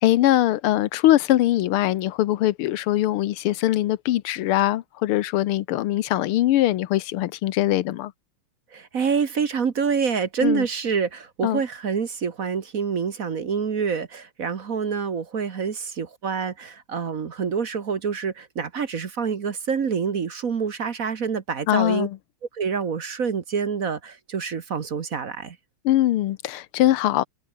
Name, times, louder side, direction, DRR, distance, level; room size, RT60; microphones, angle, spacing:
voice 1, 0.0-8.1 10.4-10.6 11.4-11.6 21.7-22.2 25.8-27.3, left 14 dB, 90° left, 1.7 m, -22 dB
voice 2, 8.7-22.1 22.5-25.6, right 6 dB, 45° right, 1.5 m, -27 dB
omnidirectional pair, 2.3 m